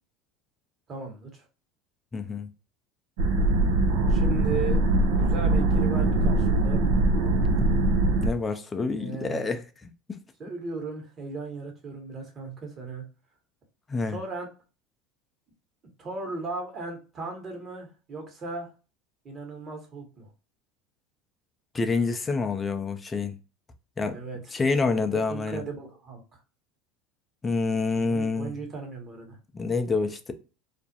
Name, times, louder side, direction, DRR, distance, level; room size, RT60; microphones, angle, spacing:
voice 1, 0.9-1.5 4.1-4.8 5.1-6.8 8.9-9.4 10.4-13.0 14.1-14.5 16.0-18.7 19.2-20.3 24.1-24.5 25.1-26.2 28.1-29.4, right 3 dB, 35° right, 1.1 m, -36 dB
voice 2, 2.1-2.5 8.2-10.2 13.9-14.2 21.7-23.4 24.0-24.2 24.5-25.6 27.4-28.5 29.5-30.3, left 4 dB, 20° left, 0.4 m, -27 dB
sound 1, 3.2-8.3, right 2 dB, 70° right, 0.4 m, -22 dB
2.4 x 2.1 x 2.6 m
hypercardioid pair, 85°, 0 cm